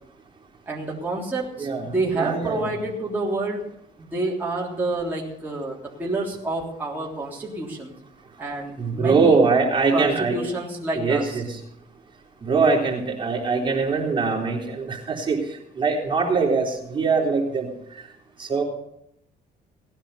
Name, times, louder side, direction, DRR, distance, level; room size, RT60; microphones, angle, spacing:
voice 1, 0.7-3.6 4.0-7.9 8.4-9.3 9.9-11.4, right 2 dB, 10° right, -5 dB, 3.4 m, -28 dB
voice 2, 1.6-2.7 8.8-10.4 10.9-11.6 12.4-18.1 18.4-18.6, right 4 dB, 30° right, -1 dB, 3.6 m, -23 dB
18.0 x 10.5 x 5.6 m, 0.79 s
cardioid pair, 110°, 17 cm